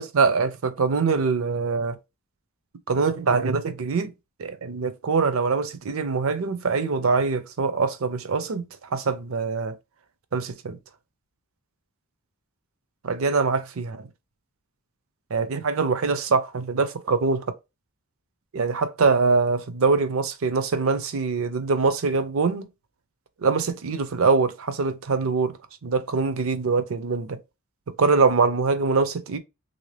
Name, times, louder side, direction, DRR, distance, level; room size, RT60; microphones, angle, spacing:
voice 1, 0.0-2.0 2.9-4.1 4.4-9.7 10.3-10.8 13.0-14.1 15.3-17.5 18.5-22.7 23.4-25.6 25.8-27.4 28.0-29.4, right 4 dB, 65° right, 0.5 m, -23 dB
3.3 x 2.7 x 3.2 m
head